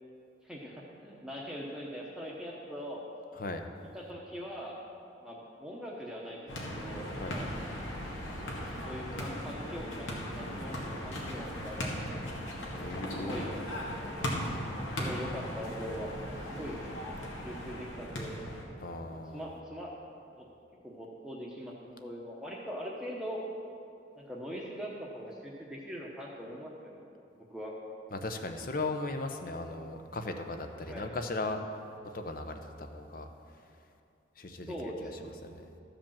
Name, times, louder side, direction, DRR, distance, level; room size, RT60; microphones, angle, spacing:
voice 1, 0.4-3.0 3.8-4.8 5.2-7.5 8.8-12.0 13.1-13.6 13.9-14.0 14.2-14.5 15.0-16.1 16.5-16.8 17.4-18.4 19.1-19.9 20.4-20.5 20.8-23.4 24.2-27.1 27.5-27.7 30.8-31.2 34.7-35.4, equal, 5° right, -4 dB, 0.9 m, -42 dB
sound 1, 6.5-18.6, equal, 85° left, 1.9 m, -38 dB
voice 2, 12.7-13.4 18.8-19.4 28.1-31.6 32.1-33.3 34.4-34.7 35.4-35.6, left 2 dB, 45° left, 6 dB, 0.8 m, -37 dB
13.0 x 5.1 x 7.3 m, 2.6 s
head